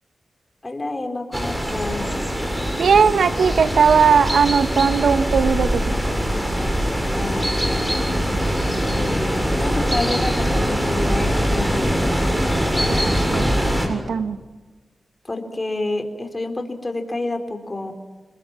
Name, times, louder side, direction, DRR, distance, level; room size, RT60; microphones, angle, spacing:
voice 1, 0.6-2.1 7.1-8.4 8.9-12.3 15.2-17.9, left 2 dB, 30° left, 5 dB, 4.0 m, -29 dB
sound 1, 1.3-13.9, equal, 15° right, 7.2 m, -22 dB
voice 2, 2.8-6.0 12.9-13.5 13.9-14.4, right 6 dB, 85° right, 11 dB, 1.2 m, -18 dB
27.5 x 21.0 x 7.5 m, 1.3 s
cardioid pair, 50°, 0 cm